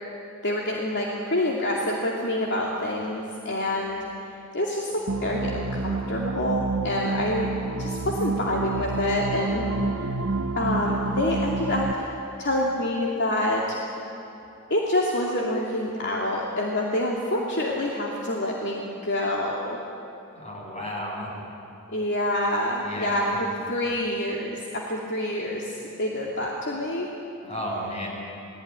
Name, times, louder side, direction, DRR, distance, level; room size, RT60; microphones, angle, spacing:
voice 1, 0.4-4.0 4.5-4.9 5.2-7.5 7.8-9.7 10.6-12.1 12.4-13.7 14.7-19.8 21.9-27.1, left 1 dB, 55° left, -2 dB, 2.6 m, -27 dB
sound 1, 5.1-11.9, right 3 dB, 85° right, 1.0 m, -29 dB
voice 2, 20.4-21.3 22.9-23.4 27.4-28.1, left 1 dB, 30° left, -2 dB, 6.9 m, -33 dB
29.0 x 19.0 x 9.7 m, 2.8 s
head